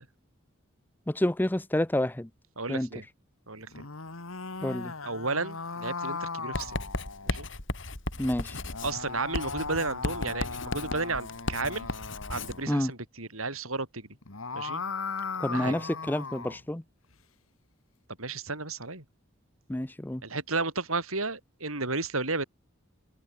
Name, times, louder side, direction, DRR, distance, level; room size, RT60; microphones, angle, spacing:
voice 1, 1.1-2.3 2.7-2.9 4.6-4.9 8.2-8.6 12.7-12.9 15.4-16.8 19.7-20.2, left 1 dB, 10° left, 0.5 m, -28 dB
voice 2, 2.6-3.0 3.5-3.7 5.0-6.8 7.2-7.5 8.8-11.9 12.3-14.1 14.5-14.8 15.5-15.8 18.2-19.0 20.2-22.4, right 3 dB, 85° right, 6.8 m, -33 dB
sound 1, 3.6-7.5 8.5-12.7 14.1-16.6, left 4 dB, 80° left, 2.2 m, -38 dB
Writing, 6.5-12.6, left 2 dB, 60° left, 4.6 m, -35 dB
head